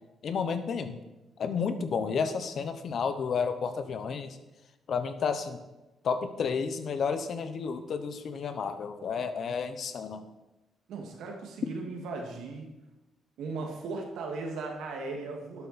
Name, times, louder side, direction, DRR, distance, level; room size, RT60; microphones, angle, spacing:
voice 1, 0.2-1.0 1.4-4.4 4.9-5.6 6.0-10.2, left 5 dB, 60° left, 10 dB, 1.0 m, -31 dB
voice 2, 10.9-12.7 13.4-15.7, right 3 dB, 80° right, 2 dB, 2.2 m, -37 dB
11.5 x 7.8 x 4.3 m, 1.0 s
cardioid pair, 90°, 0 cm